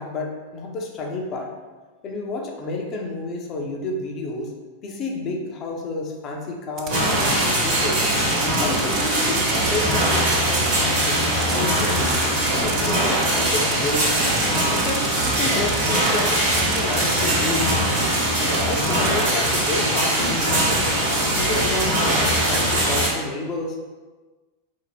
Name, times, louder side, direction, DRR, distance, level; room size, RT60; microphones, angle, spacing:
voice 1, 0.0-1.5 2.0-4.5 4.8-8.0 8.6-11.2 11.5-12.1 12.6-14.1 14.7-17.7 18.4-20.9 21.4-23.8, left 3 dB, 35° left, 1 dB, 0.5 m, -30 dB
sound 1, 6.8-7.4 7.8-10.8 11.0-17.2 17.9-18.2 18.5-19.7, right 7 dB, 35° right, 0.3 m, -31 dB
sound 2, 6.9-23.1, right 1 dB, 55° right, 1.1 m, -21 dB
2.7 x 2.0 x 3.3 m, 1.3 s
figure-of-eight pair, 90°, 0 cm